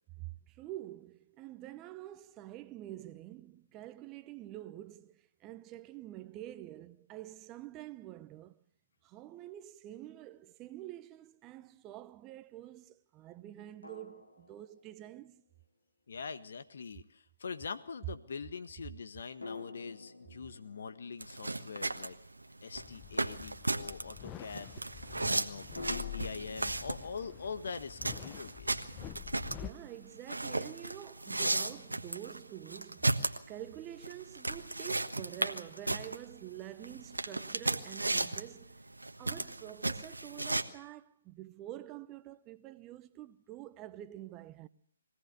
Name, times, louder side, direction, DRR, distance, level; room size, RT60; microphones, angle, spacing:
voice 1, 0.2-8.6 9.0-15.4 29.5-33.2 33.5-38.8 39.2-44.7, right 14 dB, 20° right, 0.8 m, -47 dB
sound 1, 10.2-10.3 13.8-15.3 19.4-23.0 25.8-28.5, left 3 dB, 85° left, 4.5 m, -50 dB
voice 2, 16.1-22.2 22.6-24.7 25.3-28.9, left 5 dB, 60° left, 1.5 m, -43 dB
sound 2, 21.2-40.6, right 2 dB, 90° right, 1.3 m, -35 dB
sound 3, 22.8-29.7, left 13 dB, 20° left, 0.7 m, -47 dB
22.5 x 16.5 x 6.9 m
figure-of-eight pair, 140°, 0 cm